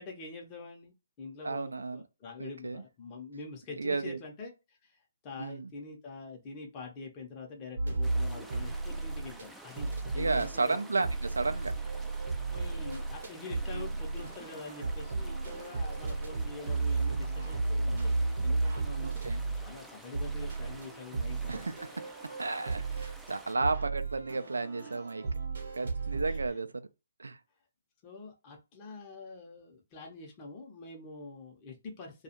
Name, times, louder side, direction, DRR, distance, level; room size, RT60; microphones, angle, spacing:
voice 1, 0.0-10.8 12.5-18.1 18.4-19.1 19.5-21.8 22.3-22.4 23.5-23.6 24.8-24.9 26.3-26.4 28.0-32.2, left 3 dB, 25° left, 0.8 m, -45 dB
voice 2, 1.4-2.0 2.4-2.8 3.8-4.2 5.4-5.7 10.2-11.7 13.7-13.9 19.0-19.4 21.5-21.7 22.4-25.2 25.8-26.9 27.2-27.4, right 3 dB, 85° right, 0.3 m, -33 dB
sound 1, 7.8-9.5 9.8-26.5, right 3 dB, 70° right, 0.8 m, -34 dB
sound 2, 8.0-23.5, right 1 dB, 5° right, 0.3 m, -51 dB
2.3 x 2.3 x 2.9 m
hypercardioid pair, 140°, 0 cm